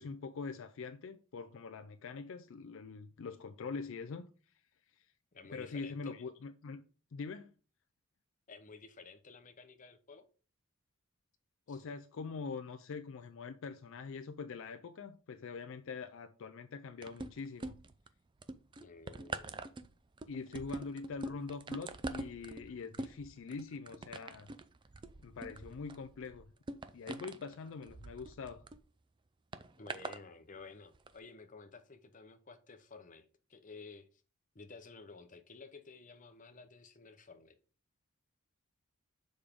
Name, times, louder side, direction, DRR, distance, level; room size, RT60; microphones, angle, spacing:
voice 1, 0.0-4.3 4.9-5.1 5.5-6.8 7.1-7.5 11.7-17.8 20.3-24.5 25.2-26.5 26.9-28.6, left 4 dB, 60° left, 0.4 m, -44 dB
voice 2, 5.3-6.1 8.5-10.3 11.7-11.8 18.8-19.6 29.8-34.2 34.5-37.6, left 4 dB, 35° left, 0.8 m, -53 dB
sound 1, 17.0-18.1 18.4-28.8 29.5-30.2 30.9-31.1, right 2 dB, 20° right, 0.4 m, -44 dB
6.8 x 5.1 x 3.6 m
head